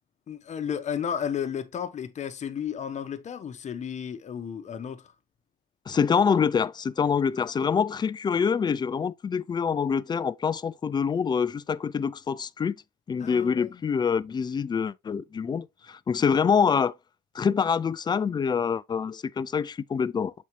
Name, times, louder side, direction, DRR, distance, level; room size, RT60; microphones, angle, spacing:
voice 1, 0.3-5.0 13.2-13.8, left 8 dB, 45° left, 1.0 m, -33 dB
voice 2, 5.9-12.8 13.1-16.9 17.3-20.3, left 6 dB, 25° left, 0.4 m, -25 dB
7.3 x 4.3 x 3.1 m
cardioid pair, 110°, 17 cm